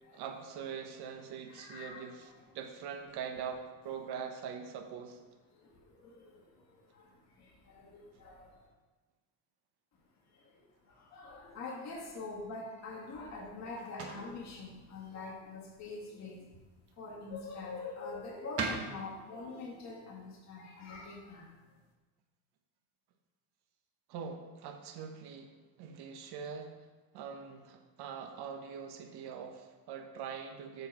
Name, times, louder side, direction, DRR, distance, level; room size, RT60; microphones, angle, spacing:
voice 1, 0.1-5.2 24.1-26.8 27.1-30.9, right 7 dB, 65° right, 4 dB, 1.2 m, -43 dB
voice 2, 1.5-2.3 5.5-8.7 10.3-16.5 17.0-21.6, left 3 dB, 40° left, -4 dB, 1.9 m, -45 dB
sound 1, 12.8-22.0, right 4 dB, 35° right, 1.2 m, -46 dB
8.1 x 4.7 x 6.1 m, 1.2 s
cardioid pair, 145°, 43 cm